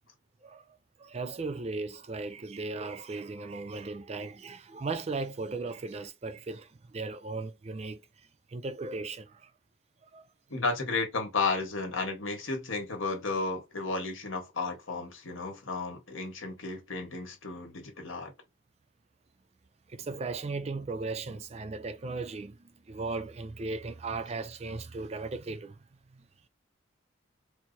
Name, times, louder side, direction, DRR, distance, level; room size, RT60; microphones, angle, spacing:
voice 1, 0.4-9.5 10.0-10.3 19.9-25.8 26.1-26.3, right 3 dB, 30° right, 0.3 m, -37 dB
voice 2, 10.5-18.3, left 3 dB, 80° left, 1.5 m, -33 dB
4.4 x 2.0 x 3.9 m
head